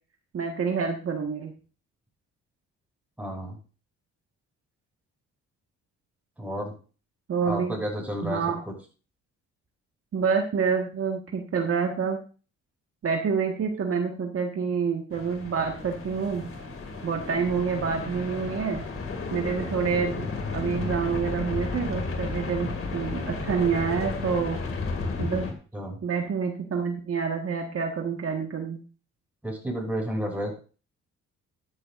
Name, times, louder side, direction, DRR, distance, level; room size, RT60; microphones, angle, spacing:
voice 1, 0.3-1.5 7.3-7.7 8.2-8.6 10.1-12.2 13.0-16.5 17.0-18.8 19.3-20.3 20.5-24.6 25.2-25.4 26.0-28.8, right 6 dB, 50° right, 2 dB, 1.6 m, -27 dB
voice 2, 3.2-3.6 6.4-6.7 7.4-8.4 25.7-26.0 29.4-30.5, equal, 5° right, 0 dB, 6.1 m, -31 dB
sound 1, 15.1-25.5, left 3 dB, 45° left, 2.4 m, -33 dB
13.0 x 11.0 x 2.6 m, 0.36 s
cardioid pair, 90°, 30 cm